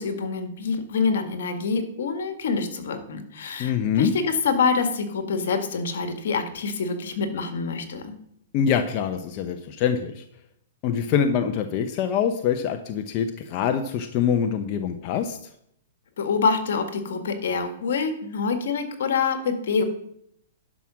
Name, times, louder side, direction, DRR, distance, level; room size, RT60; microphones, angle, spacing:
voice 1, 0.0-8.1 16.2-19.8, left 5 dB, 70° left, 7 dB, 1.8 m, -26 dB
voice 2, 3.6-4.1 8.5-10.2 10.8-15.4, left 8 dB, 40° left, 6 dB, 0.8 m, -24 dB
11.0 x 6.0 x 6.2 m, 0.72 s
hypercardioid pair, 140°, 0 cm